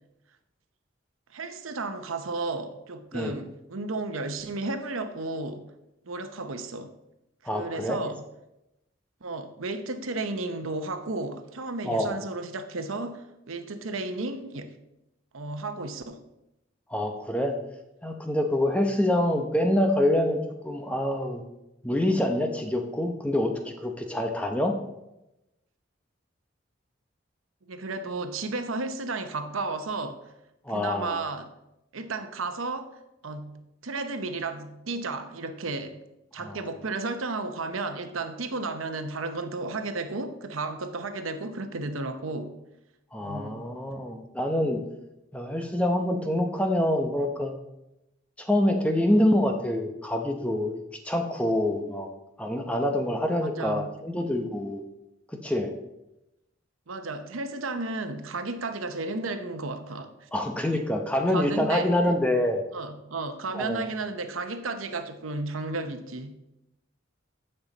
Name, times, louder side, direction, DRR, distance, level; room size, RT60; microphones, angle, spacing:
voice 1, 1.3-5.7 6.0-6.9 7.4-8.2 9.2-14.7 15.3-16.2 27.7-30.3 30.7-31.5 31.9-36.0 36.3-42.5 43.2-43.6 53.4-53.9 56.9-60.3 60.7-60.8 61.2-61.9 62.7-66.4, right 3 dB, 90° right, 0.8 m, -33 dB
voice 2, 7.4-8.0 11.8-12.2 16.9-17.6 18.0-21.4 21.8-24.7 30.6-31.2 36.4-36.6 43.1-44.8 45.3-47.5 48.4-50.8 51.0-52.1 52.4-54.8 55.3-55.7 60.3-62.6 63.5-63.9, left 1 dB, 5° left, 0.8 m, -26 dB
14.5 x 5.6 x 4.0 m
head